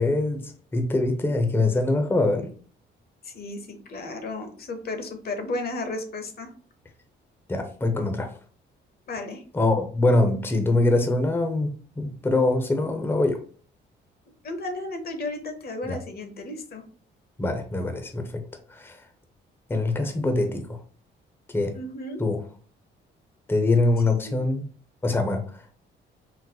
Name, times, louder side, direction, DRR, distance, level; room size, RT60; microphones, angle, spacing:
voice 1, 0.0-2.5 7.5-8.3 9.5-13.4 15.8-16.0 17.4-18.4 18.7-19.0 19.7-20.8 21.5-21.8 22.2-22.4 23.5-24.7 25.0-25.8, left 2 dB, 10° left, 0.5 m, -24 dB
voice 2, 3.2-6.5 9.1-9.4 14.4-16.8 21.7-22.2 24.1-24.4, left 2 dB, 50° left, 0.7 m, -34 dB
3.8 x 2.0 x 2.8 m
cardioid pair, 90°, 20 cm